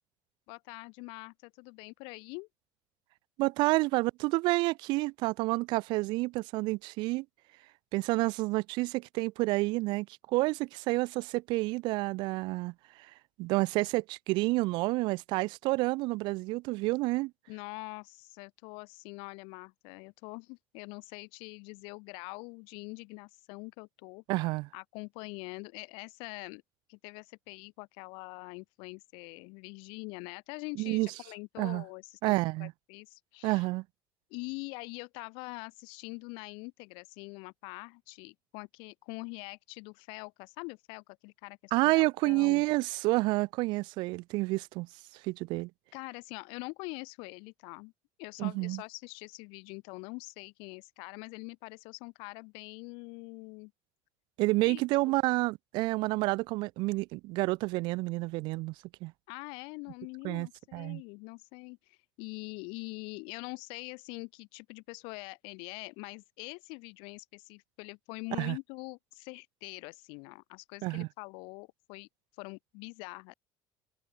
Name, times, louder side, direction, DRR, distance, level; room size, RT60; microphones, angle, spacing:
voice 1, 0.5-2.5 17.5-24.2 24.7-26.6 26.9-32.3 32.6-33.6 34.3-42.6 45.9-47.9 48.2-53.7 54.6-54.8 59.3-72.1 72.4-73.3, left 31 dB, 85° left, 4.8 m, -44 dB
voice 2, 3.4-7.2 7.9-12.7 13.4-17.3 24.3-24.7 30.8-31.1 31.6-31.8 32.2-32.7 33.4-33.8 41.7-44.9 45.2-45.7 48.4-48.8 54.4-58.7 59.0-59.1 60.2-61.0 68.4-68.6 70.8-71.1, right 22 dB, 65° right, 0.6 m, -29 dB
cardioid pair, 170°, 8 cm